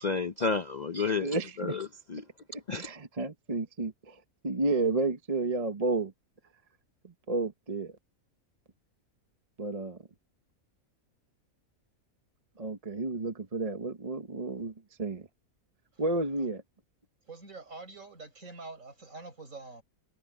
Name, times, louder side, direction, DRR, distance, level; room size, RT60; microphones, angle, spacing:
voice 1, 0.0-2.2 2.7-2.9, left 4 dB, 45° left, 0.6 m, -31 dB
voice 2, 1.2-1.8 2.5-6.1 7.0-7.9 9.6-10.0 12.6-14.7 15.0-15.3 16.0-16.6, right 3 dB, 30° right, 1.1 m, -31 dB
voice 3, 17.3-19.8, right 3 dB, 65° right, 6.3 m, -46 dB
omnidirectional pair, 1.5 m